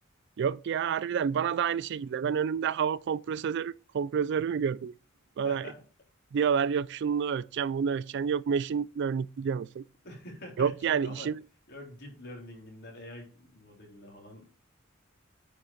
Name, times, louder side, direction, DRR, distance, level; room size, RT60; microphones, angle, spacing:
voice 1, 0.4-4.9 5.4-5.7 6.3-9.8 10.6-11.4, right 7 dB, 60° right, 0.3 m, -29 dB
voice 2, 5.4-5.7 10.0-11.3 11.7-14.5, left 1 dB, 55° left, 3.9 m, -46 dB
9.6 x 5.2 x 5.0 m
head